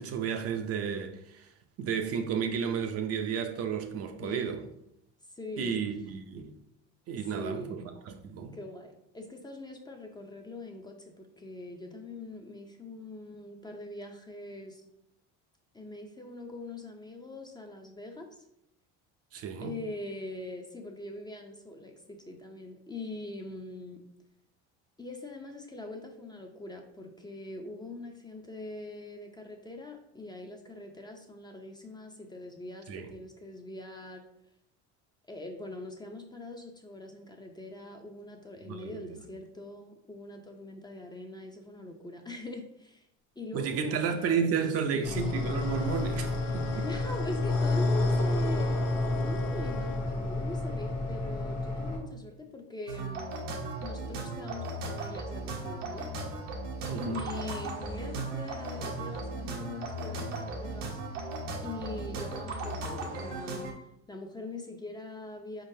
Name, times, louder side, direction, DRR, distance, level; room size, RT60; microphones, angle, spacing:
voice 1, 0.0-1.5 1.8-4.6 5.6-6.5 7.1-8.6 19.3-19.7 32.9-33.1 38.7-39.2 43.5-46.9 56.9-57.3, right 7 dB, 40° right, 0.5 m, -32 dB
voice 2, 4.2-4.7 5.3-5.8 7.3-7.8 8.5-14.8 15.7-18.3 19.6-24.0 25.0-34.2 35.3-43.1 43.4-44.3 44.9-45.3 46.8-48.8 49.2-53.4 53.8-56.1 56.9-61.3 61.6-63.7 64.1-65.6, left 2 dB, 10° left, 0.5 m, -42 dB
sound 1, 45.0-52.0, left 2 dB, 90° left, 1.0 m, -30 dB
Wind instrument woodwind instrument, 45.3-50.1, left 5 dB, 60° left, 0.6 m, -43 dB
sound 2, 52.9-63.7, right 2 dB, 85° right, 0.9 m, -37 dB
4.5 x 3.8 x 2.7 m
supercardioid pair, 100°, 36 cm